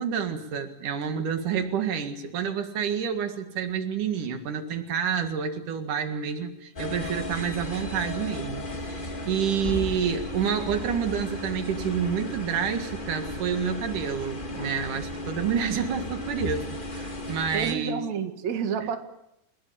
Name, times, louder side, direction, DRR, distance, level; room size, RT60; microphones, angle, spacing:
voice 1, 0.0-18.0, right 7 dB, 85° right, 7 dB, 3.4 m, -29 dB
sound 1, 6.8-17.7, left 1 dB, 20° left, 1.8 m, -35 dB
voice 2, 17.5-19.0, right 7 dB, 65° right, 6 dB, 3.2 m, -29 dB
30.0 x 17.5 x 8.7 m, 0.83 s
omnidirectional pair, 3.5 m